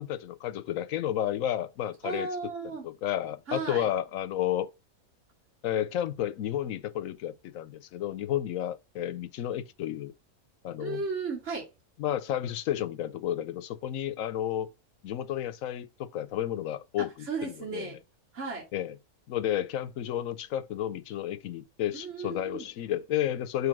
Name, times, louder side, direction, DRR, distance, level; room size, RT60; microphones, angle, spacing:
voice 1, 0.0-2.3 2.8-4.7 5.6-10.1 10.6-11.0 12.0-14.7 15.0-17.1 17.4-17.9 18.7-18.9 19.3-23.7, left 11 dB, 75° left, 1.1 m, -31 dB
voice 2, 2.0-2.8 3.5-3.9 10.8-11.7 17.0-18.0 18.3-18.7 21.9-22.7, right 4 dB, 55° right, 2.9 m, -35 dB
7.0 x 3.3 x 5.9 m
omnidirectional pair, 1.5 m